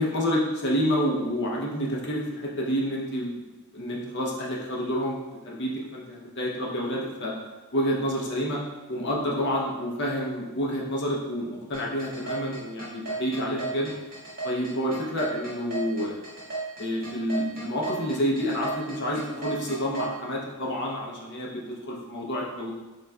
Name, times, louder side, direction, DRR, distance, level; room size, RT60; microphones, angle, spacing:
voice 1, 0.0-3.4 3.7-5.2 5.4-7.3 7.7-8.6 8.9-13.9 14.4-16.1 16.8-22.7, equal, 50° left, -3 dB, 0.8 m, -28 dB
sound 1, 11.7-20.1, right 3 dB, 40° right, 1.3 m, -34 dB
4.0 x 3.2 x 2.3 m, 1.2 s
head